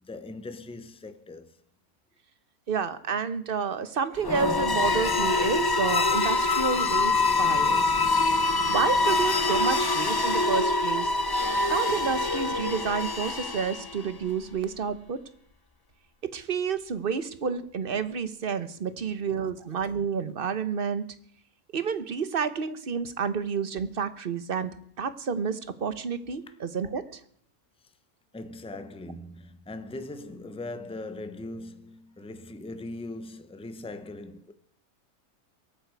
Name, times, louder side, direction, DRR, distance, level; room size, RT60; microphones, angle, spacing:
voice 1, 0.0-1.6 19.0-19.1 28.3-34.5, left 2 dB, 5° left, 0.7 m, -40 dB
voice 2, 2.7-7.9 8.7-11.1 11.7-15.2 16.3-21.0 21.7-27.2, right 6 dB, 40° right, 1.0 m, -30 dB
sound 1, 4.2-14.1, left 3 dB, 40° left, 0.3 m, -25 dB
22.5 x 9.1 x 4.7 m
omnidirectional pair, 1.6 m